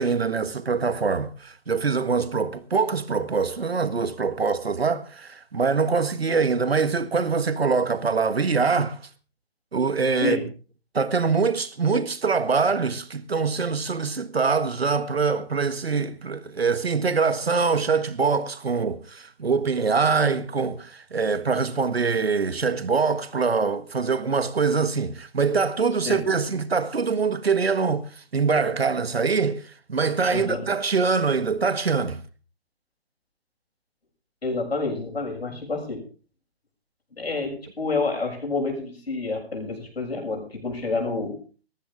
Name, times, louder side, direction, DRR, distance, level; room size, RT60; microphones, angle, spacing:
voice 1, 0.0-9.0 9.7-10.4 10.9-32.2, right 5 dB, 75° right, 1.6 m, -24 dB
voice 2, 30.3-30.7 34.4-36.0 37.1-41.4, left 3 dB, 75° left, 7.4 m, -28 dB
19.5 x 14.5 x 3.7 m
figure-of-eight pair, 135°, 31 cm